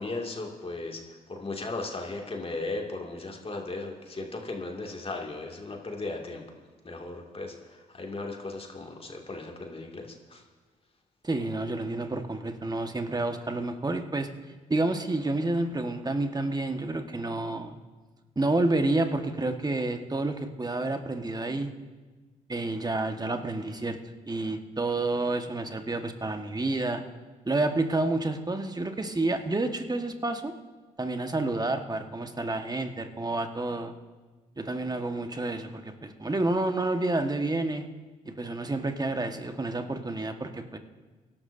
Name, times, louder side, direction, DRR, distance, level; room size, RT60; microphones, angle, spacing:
voice 1, 0.0-6.4 6.8-10.4, left 2 dB, 35° left, 1 dB, 2.3 m, -36 dB
voice 2, 11.2-14.3 14.7-17.8 18.3-21.7 22.5-24.0 24.3-27.0 27.4-30.5 31.0-33.9 34.6-37.9 38.2-40.8, right 2 dB, 25° right, 6 dB, 1.4 m, -29 dB
23.5 x 12.0 x 2.7 m, 1.3 s
hypercardioid pair, 45°, 17 cm